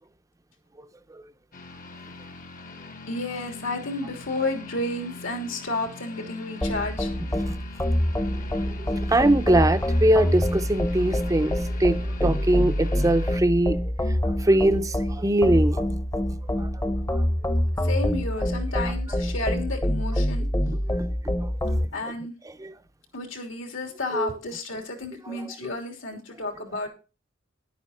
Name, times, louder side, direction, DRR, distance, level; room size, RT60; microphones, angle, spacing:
sound 1, 1.5-13.4, left 3 dB, 45° left, 1.2 m, -42 dB
voice 1, 3.1-7.1 17.8-20.5 21.9-22.3 23.1-26.9, left 2 dB, 75° left, 3.1 m, -31 dB
sound 2, 6.6-21.8, equal, 15° left, 0.9 m, -26 dB
voice 2, 8.8-13.8 14.3-16.0 16.6-16.7 17.1-17.2 20.7-21.0 21.4-21.8 22.6-22.7 24.1-24.3 25.3-25.5, right 1 dB, 15° right, 0.6 m, -23 dB
11.0 x 9.3 x 4.3 m
head